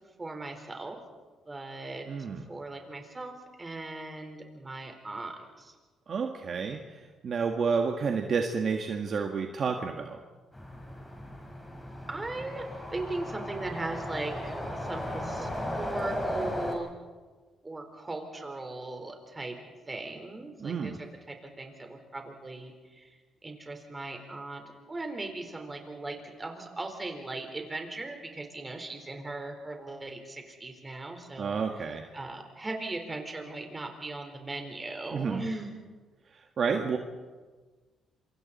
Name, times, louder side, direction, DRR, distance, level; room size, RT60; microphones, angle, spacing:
voice 1, 0.2-1.0 1.5-2.1 2.5-5.7 12.1-12.7 12.9-16.9 17.6-19.6 19.9-20.9 21.3-23.1 23.4-24.6 24.9-35.7, right 2 dB, 20° right, 4 dB, 4.2 m, -38 dB
voice 2, 2.1-2.4 6.1-10.2 20.6-21.0 31.4-32.1 35.1-35.4 36.6-37.0, right 5 dB, 55° right, 3 dB, 1.7 m, -30 dB
sound 1, 10.5-16.8, left 1 dB, 10° left, 5.0 m, -36 dB
27.5 x 25.0 x 4.3 m, 1.4 s
cardioid pair, 90°, 0 cm